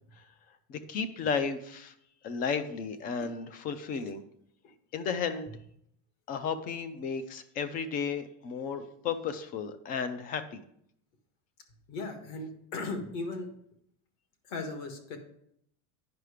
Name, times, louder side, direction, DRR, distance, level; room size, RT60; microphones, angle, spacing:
voice 1, 0.7-1.9 2.2-4.2 4.9-5.5 6.3-10.6, left 6 dB, 25° left, 12 dB, 0.4 m, -33 dB
voice 2, 11.9-13.5 14.4-15.2, left 3 dB, 50° left, 6 dB, 1.6 m, -37 dB
9.4 x 5.7 x 4.9 m, 0.71 s
cardioid pair, 180°, 38 cm